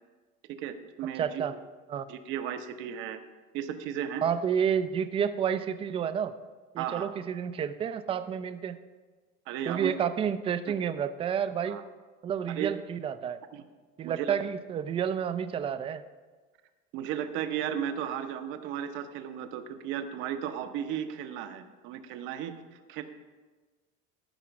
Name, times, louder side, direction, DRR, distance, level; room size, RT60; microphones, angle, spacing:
voice 1, 0.6-1.4 2.1-3.2 3.5-4.2 6.8-7.1 9.5-9.9 11.7-11.8 12.5-12.7 13.5-13.6 14.0-14.3 16.9-23.0, right 9 dB, 65° right, 8 dB, 0.9 m, -35 dB
voice 2, 1.2-1.5 1.9-2.0 4.2-6.4 6.7-8.8 9.7-11.8 12.2-13.4 14.0-16.0, right 8 dB, 25° right, 11 dB, 0.4 m, -30 dB
13.0 x 5.0 x 5.8 m, 1.3 s
cardioid pair, 150°, 21 cm